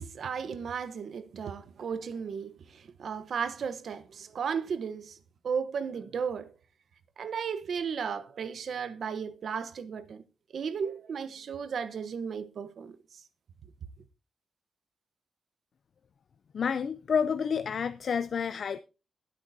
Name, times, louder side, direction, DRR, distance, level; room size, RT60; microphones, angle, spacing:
voice 1, 0.0-5.2 5.4-6.5 7.2-10.2 10.5-13.0, right 6 dB, 60° right, 1.0 m, -35 dB
voice 2, 16.5-18.8, left 6 dB, 55° left, 0.5 m, -29 dB
21.0 x 8.9 x 2.7 m
wide cardioid pair, 155°, 0 cm